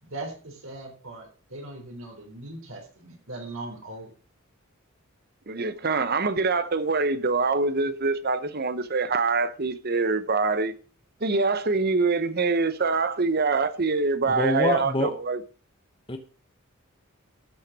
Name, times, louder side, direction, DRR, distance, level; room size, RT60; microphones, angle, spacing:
voice 1, 0.0-4.1, right 2 dB, 70° right, 3.6 m, -39 dB
voice 2, 5.5-10.7 11.2-15.4, right 4 dB, 45° right, 1.0 m, -24 dB
voice 3, 14.3-15.1 16.1-16.2, left 2 dB, 25° left, 1.0 m, -25 dB
13.0 x 6.5 x 6.2 m
head